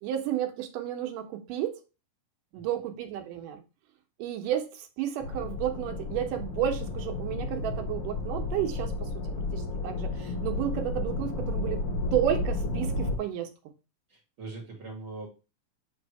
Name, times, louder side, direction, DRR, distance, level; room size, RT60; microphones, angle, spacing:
voice 1, 0.0-1.8 2.5-3.6 4.2-9.1 9.5-11.8 12.1-13.5, right 11 dB, 85° right, 2.5 m, -32 dB
sound 1, 5.2-13.2, left 2 dB, 70° left, 1.3 m, -32 dB
voice 2, 14.1-15.3, right 3 dB, 50° right, 1.6 m, -41 dB
7.8 x 2.7 x 4.6 m
omnidirectional pair, 3.7 m